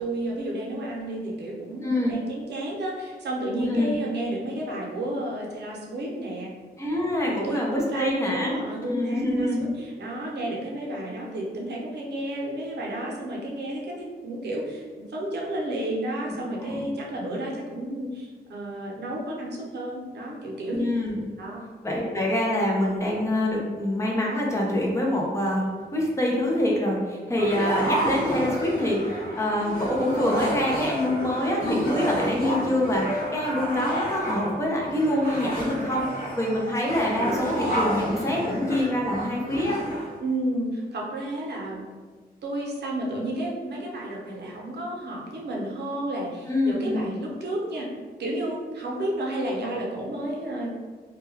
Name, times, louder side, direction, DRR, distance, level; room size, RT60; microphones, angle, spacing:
voice 1, 0.0-6.5 7.2-20.8 21.4-21.6 40.2-41.9 42.4-47.9 48.2-50.7, right 1 dB, 80° right, -3 dB, 0.6 m, -31 dB
voice 2, 1.8-2.1 3.6-4.0 6.8-8.6 8.8-9.7 16.6-16.8 20.7-21.2 21.8-36.1 36.4-39.8 46.5-47.1, left 1 dB, 15° left, -2 dB, 0.5 m, -25 dB
sound 1, 27.4-40.2, equal, 55° left, 0.8 m, -30 dB
2.2 x 2.2 x 3.1 m, 1.4 s
wide cardioid pair, 165°, 17 cm